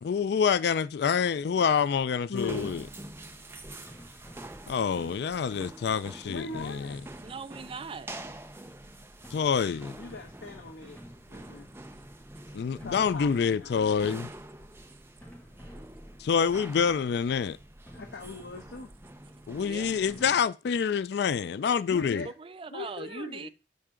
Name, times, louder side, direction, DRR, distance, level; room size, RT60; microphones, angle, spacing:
voice 1, 0.0-2.8 4.7-7.0 9.3-10.0 12.5-14.3 16.2-17.6 19.5-22.3, left 6 dB, 60° left, 0.3 m, -27 dB
voice 2, 2.3-2.7 6.2-7.0 10.0-11.0 11.3-11.7 12.6-13.9 17.9-18.9 21.8-22.3 22.7-23.5, left 3 dB, 80° left, 0.9 m, -40 dB
sound 1, 2.4-20.4, right 1 dB, 15° right, 0.8 m, -46 dB
sound 2, 3.9-5.2 6.5-7.8 9.2-12.3 12.8-14.3 15.2-16.6 17.9-19.2 20.1-20.3, equal, 5° left, 2.0 m, -52 dB
voice 3, 7.2-8.1 19.6-19.9 22.2-23.5, right 4 dB, 30° right, 0.4 m, -40 dB
9.3 x 5.6 x 3.7 m
head